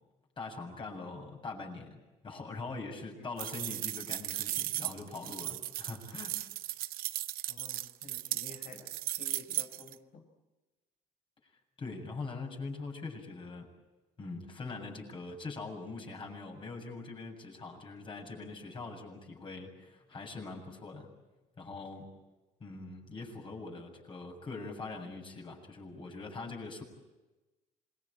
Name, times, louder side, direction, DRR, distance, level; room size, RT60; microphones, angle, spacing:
voice 1, 0.4-6.5 11.8-13.7 14.2-21.1 21.6-22.1 22.6-26.8, left 3 dB, 35° left, 2 dB, 7.2 m, -43 dB
voice 2, 3.1-3.5 7.5-10.2, left 3 dB, 50° left, 3 dB, 5.0 m, -52 dB
sound 1, 3.4-9.9, right 15 dB, 70° right, 0.8 m, -36 dB
26.5 x 21.5 x 8.7 m, 1.1 s
cardioid pair, 100°, 16 cm